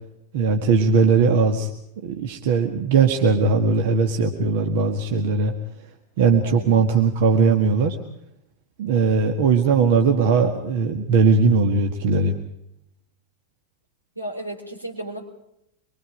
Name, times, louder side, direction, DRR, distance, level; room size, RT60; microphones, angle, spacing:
voice 1, 0.3-1.7 2.0-5.5 6.2-8.0 8.8-12.4, right 4 dB, 50° right, 5 dB, 1.7 m, -19 dB
voice 2, 6.4-6.8 14.2-15.2, right 1 dB, 85° right, 3 dB, 4.1 m, -34 dB
25.0 x 23.0 x 5.1 m, 0.78 s
figure-of-eight pair, 90°, 0 cm